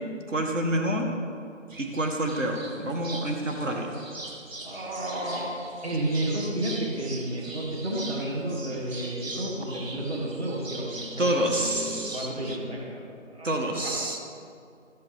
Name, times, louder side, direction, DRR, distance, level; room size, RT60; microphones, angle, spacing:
voice 1, 0.3-1.1 1.8-3.9 11.2-12.3 13.4-14.2, right 1 dB, 70° right, 2 dB, 1.5 m, -27 dB
sound 1, 1.7-12.6, right 2 dB, 90° right, 1.2 m, -42 dB
voice 2, 4.6-5.5 5.8-11.3 11.5-13.1 13.3-13.9, right 1 dB, 55° right, -3 dB, 2.3 m, -31 dB
13.5 x 8.2 x 3.5 m, 2.4 s
figure-of-eight pair, 175°, 39 cm